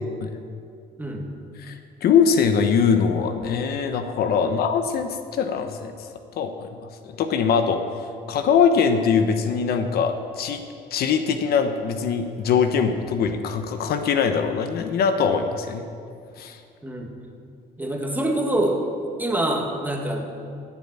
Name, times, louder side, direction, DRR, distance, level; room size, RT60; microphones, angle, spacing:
voice 1, 2.0-5.9 6.4-7.8 8.3-10.6 10.9-15.9 16.4-16.6, left 6 dB, 65° left, 7 dB, 1.0 m, -22 dB
voice 2, 16.8-17.1 17.8-18.8 19.2-20.3, right 1 dB, 10° right, 1 dB, 2.0 m, -25 dB
14.0 x 7.4 x 8.7 m, 2.3 s
cardioid pair, 110°, 17 cm